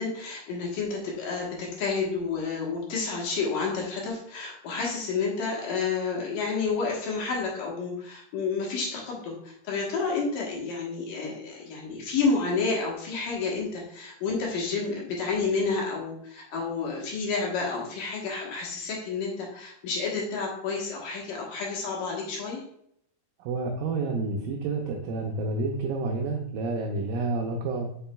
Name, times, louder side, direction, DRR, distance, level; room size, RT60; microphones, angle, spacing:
voice 1, 0.0-22.6, left 4 dB, 65° left, -3 dB, 2.6 m, -30 dB
voice 2, 23.4-28.1, right 3 dB, 80° right, 1 dB, 2.1 m, -29 dB
7.0 x 6.0 x 2.2 m, 0.72 s
omnidirectional pair, 4.6 m